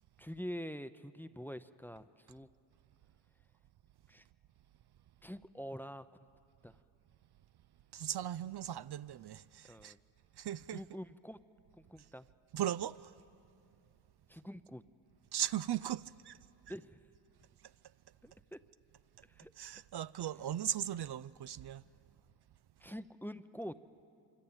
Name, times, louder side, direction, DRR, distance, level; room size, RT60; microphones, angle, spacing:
voice 1, 0.2-2.5 4.1-4.3 5.2-6.1 6.6-6.8 9.7-10.0 10.7-11.4 11.8-12.3 14.3-14.8 16.7-17.0 18.2-18.6 19.3-19.5 22.8-23.7, equal, 5° left, 0.7 m, -45 dB
voice 2, 7.9-9.9 10.4-10.8 12.5-13.1 15.3-16.4 19.6-21.8, right 11 dB, 60° right, 0.5 m, -38 dB
25.5 x 25.0 x 8.8 m
cardioid pair, 70°, 46 cm